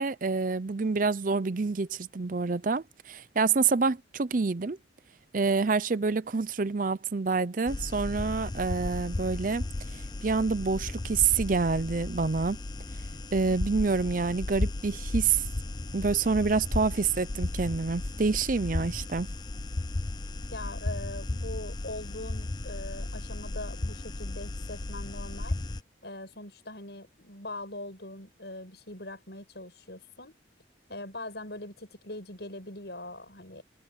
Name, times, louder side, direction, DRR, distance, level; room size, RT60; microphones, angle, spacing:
voice 1, 0.0-4.8 5.3-9.6 9.9-12.6 13.3-15.4 15.9-19.3, right 4 dB, 45° right, 0.5 m, -27 dB
sound 1, 7.7-25.8, left 2 dB, 20° left, 0.5 m, -35 dB
voice 2, 20.5-25.6 26.0-30.3 30.9-33.6, left 2 dB, 60° left, 7.4 m, -41 dB
head